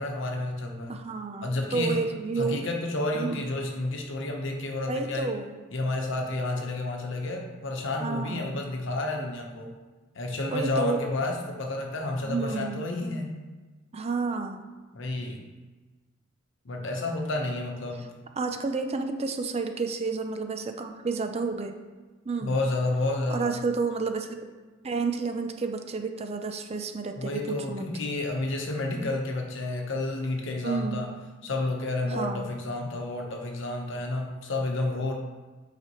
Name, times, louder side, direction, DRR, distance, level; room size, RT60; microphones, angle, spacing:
voice 1, 0.0-1.0 1.4-2.0 2.4-5.3 5.7-9.7 10.1-13.3 14.9-15.4 16.6-18.1 22.4-23.6 27.2-31.1 31.4-35.1, left 2 dB, 65° left, 2 dB, 1.0 m, -30 dB
voice 2, 0.9-2.6 3.1-3.4 4.9-5.6 8.0-8.6 10.5-11.0 12.2-12.8 13.9-14.6 18.4-21.8 22.3-22.6 23.3-24.4 24.8-27.8 30.6-31.1 32.1-32.5, right 4 dB, 30° right, 6 dB, 0.5 m, -30 dB
8.5 x 5.0 x 3.1 m, 1.3 s
head